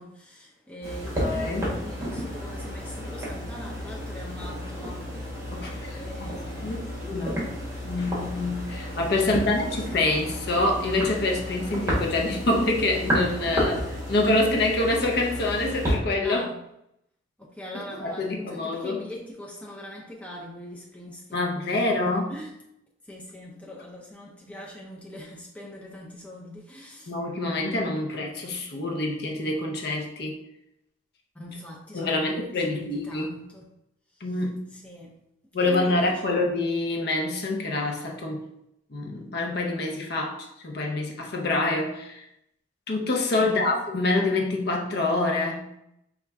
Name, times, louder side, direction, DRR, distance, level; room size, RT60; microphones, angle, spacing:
voice 1, 0.0-5.1 5.5-7.0 9.2-9.9 13.4-13.5 16.2-16.6 17.4-22.0 22.3-22.5 23.0-27.1 31.3-33.7 34.1-34.3 34.7-35.2 35.6-36.4 43.3-43.8, equal, 5° left, -3 dB, 0.5 m, -42 dB
sound 1, 0.8-16.0, equal, 15° right, 1.2 m, -32 dB
voice 2, 1.2-1.7 5.5-6.3 6.6-7.4 7.8-16.4 18.0-19.0 21.3-22.3 27.1-30.4 31.9-33.3 34.2-34.7 35.5-38.4 38.9-42.3 42.9-45.6, left 2 dB, 55° left, 1 dB, 0.6 m, -26 dB
4.2 x 2.4 x 3.5 m, 0.80 s
head